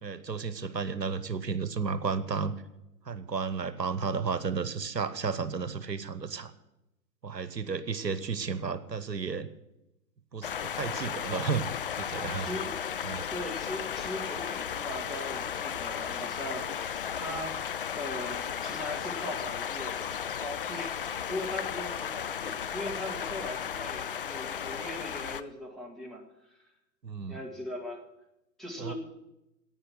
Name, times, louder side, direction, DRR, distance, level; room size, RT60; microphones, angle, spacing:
voice 1, 0.0-2.5 3.1-6.5 7.2-9.5 10.3-12.5 13.0-13.2 27.0-27.4 28.8-28.9, right 5 dB, 80° right, 13 dB, 1.1 m, -33 dB
By a pond ambience, 10.4-25.4, left 8 dB, 35° left, 0.5 m, -35 dB
voice 2, 10.8-11.2 12.4-12.8 13.3-26.6 27.3-28.0 28.6-28.9, left 1 dB, ahead, -2 dB, 1.7 m, -40 dB
11.0 x 8.9 x 9.2 m, 0.91 s
figure-of-eight pair, 120°, 49 cm